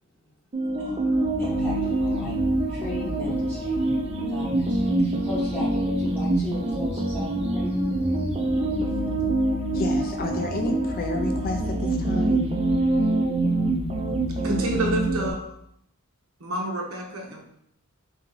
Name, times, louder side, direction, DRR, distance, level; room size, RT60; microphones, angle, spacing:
sound 1, 0.5-15.3, right 2 dB, 25° right, 0.5 m, -25 dB
voice 1, 0.8-1.1 1.4-2.3 2.7-3.8 4.3-7.7, left 1 dB, 10° left, -8 dB, 1.5 m, -37 dB
voice 2, 9.7-12.4, left 3 dB, 40° left, 4 dB, 0.3 m, -31 dB
voice 3, 14.4-15.4 16.4-17.4, right 1 dB, 65° right, 1 dB, 0.8 m, -28 dB
3.7 x 2.8 x 3.8 m, 0.74 s
head